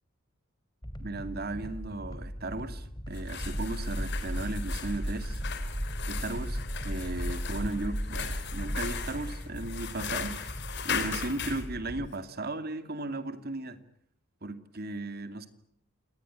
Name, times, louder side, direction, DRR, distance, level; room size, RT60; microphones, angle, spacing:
sound 1, 0.8-12.1, equal, 20° left, 2.7 m, -41 dB
voice 1, 1.0-5.4 6.1-13.8 14.4-15.5, right 2 dB, 45° right, 10 dB, 2.4 m, -36 dB
sound 2, 3.1-11.7, left 7 dB, 55° left, 3.7 m, -38 dB
sound 3, 3.4-9.1, equal, 20° right, 1.3 m, -35 dB
27.5 x 19.5 x 9.9 m, 0.70 s
head